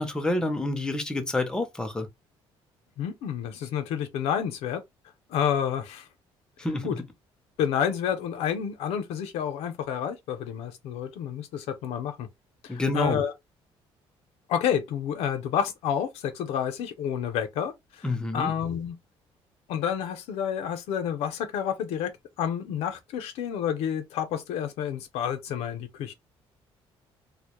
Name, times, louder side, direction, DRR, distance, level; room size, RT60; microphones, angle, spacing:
voice 1, 0.0-2.1 6.6-7.0 12.7-13.2 18.0-18.5, left 2 dB, 5° left, 0.4 m, -28 dB
voice 2, 3.0-4.8 5.3-6.1 6.8-7.0 7.6-12.3 12.6-13.3 14.5-18.1 18.3-19.0 19.7-22.1 22.4-26.1, left 8 dB, 85° left, 0.5 m, -29 dB
2.1 x 2.0 x 2.9 m
cardioid pair, 155°, 10 cm